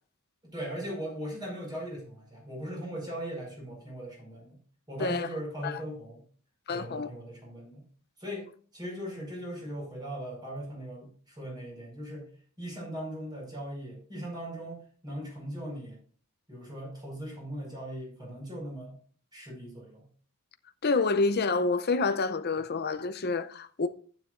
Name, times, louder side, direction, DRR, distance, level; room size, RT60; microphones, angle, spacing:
voice 1, 0.4-4.6 4.9-6.2 6.7-7.8 8.2-8.5 8.7-12.2 12.6-16.0 16.5-19.0 19.3-20.1, equal, 20° right, 5.2 m, -39 dB
voice 2, 6.7-7.1 20.8-23.9, left 3 dB, 50° left, 0.6 m, -28 dB
12.0 x 9.2 x 2.5 m
head